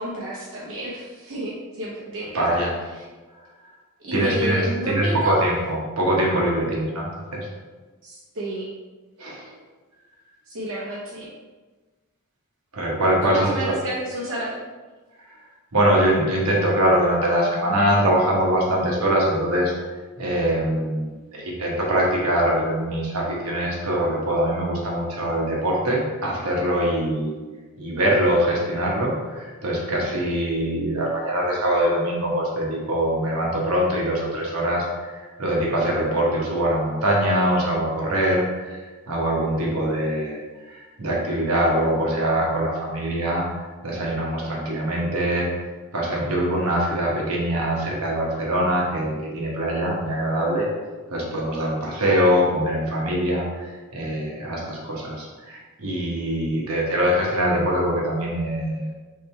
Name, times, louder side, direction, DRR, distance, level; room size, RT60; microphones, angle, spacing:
voice 1, 0.0-2.6 4.0-5.4 8.0-8.7 10.5-11.3 13.2-14.6, right 1 dB, 60° right, -5 dB, 0.8 m, -30 dB
voice 2, 2.3-2.7 4.1-7.5 9.2-9.5 12.7-13.7 15.3-15.4 15.7-19.7 20.2-27.3 27.8-40.4 40.7-45.5 45.9-50.7 51.1-58.9, right 1 dB, 80° right, -3 dB, 1.1 m, -23 dB
3.7 x 3.2 x 4.4 m, 1.3 s
head